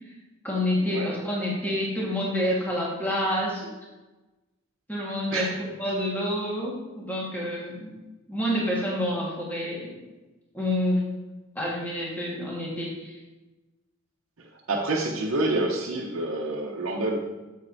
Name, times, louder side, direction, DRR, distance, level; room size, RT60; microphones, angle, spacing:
voice 1, 0.4-3.7 4.9-5.5 5.8-7.9 8.3-9.9 10.5-11.0 11.5-13.1, left 1 dB, 10° left, -5 dB, 1.5 m, -28 dB
voice 2, 5.3-5.6 14.4-17.2, right 2 dB, 85° right, -2 dB, 0.8 m, -28 dB
7.5 x 7.2 x 2.6 m, 1.1 s
head